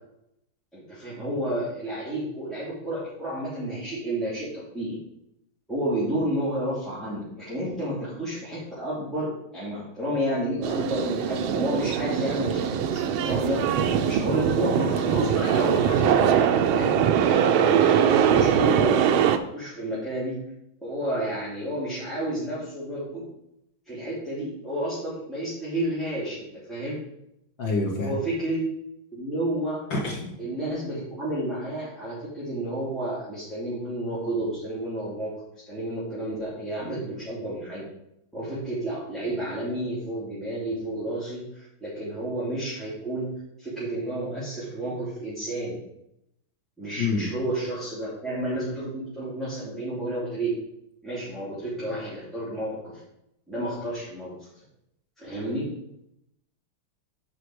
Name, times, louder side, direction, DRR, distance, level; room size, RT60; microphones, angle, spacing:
voice 1, 0.7-5.0 5.7-13.6 14.0-19.2 19.5-20.4 20.8-23.2 23.9-27.0 28.0-28.7 29.1-29.8 30.4-35.3 35.7-37.8 38.3-43.3 43.6-45.8 46.8-50.5 51.0-53.0 53.5-54.3 55.2-55.7, right 1 dB, ahead, -11 dB, 2.7 m, -31 dB
sound 1, 10.6-19.4, right 8 dB, 80° right, 1.4 m, -22 dB
voice 2, 27.6-28.1 29.9-30.3 47.0-47.3, left 3 dB, 65° left, -2 dB, 2.7 m, -27 dB
8.2 x 5.0 x 4.8 m, 0.80 s
omnidirectional pair, 2.3 m